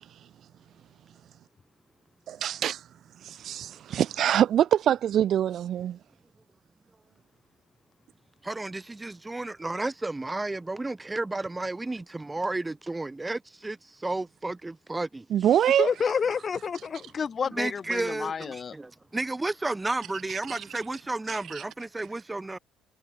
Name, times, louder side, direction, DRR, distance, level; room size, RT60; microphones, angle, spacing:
voice 1, 2.3-2.8 3.2-6.0 15.3-15.9 20.3-20.6 21.3-21.4, right 10 dB, 55° right, 1.0 m, -24 dB
voice 2, 8.4-15.3 17.4-22.6, right 2 dB, 10° right, 4.6 m, -32 dB
voice 3, 15.8-18.7, left 6 dB, 35° left, 1.7 m, -29 dB
cardioid pair, 125°, 0 cm